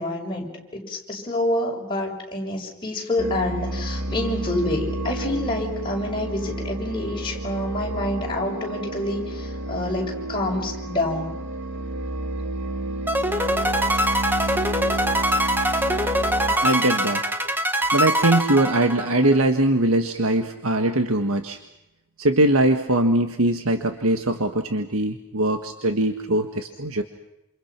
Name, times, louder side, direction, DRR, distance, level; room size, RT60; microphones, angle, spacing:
voice 1, 0.0-11.3, left 1 dB, 25° left, -2 dB, 6.8 m, -27 dB
sound 1, 3.2-16.6, right 1 dB, 55° right, 2.7 m, -31 dB
sound 2, 13.1-19.4, equal, 10° right, 1.5 m, -23 dB
voice 2, 16.6-17.2 17.9-21.6 22.2-27.0, right 1 dB, 75° right, 6 dB, 1.6 m, -21 dB
28.5 x 28.5 x 6.0 m, 0.90 s
head